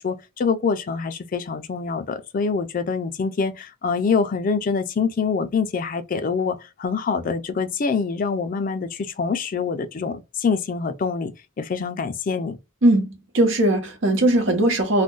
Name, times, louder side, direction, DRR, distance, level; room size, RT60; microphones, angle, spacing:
voice 1, 0.0-12.6, left 5 dB, 45° left, 0.4 m, -25 dB
voice 2, 12.8-15.0, right 1 dB, 85° right, 1.0 m, -19 dB
2.4 x 2.1 x 3.7 m
head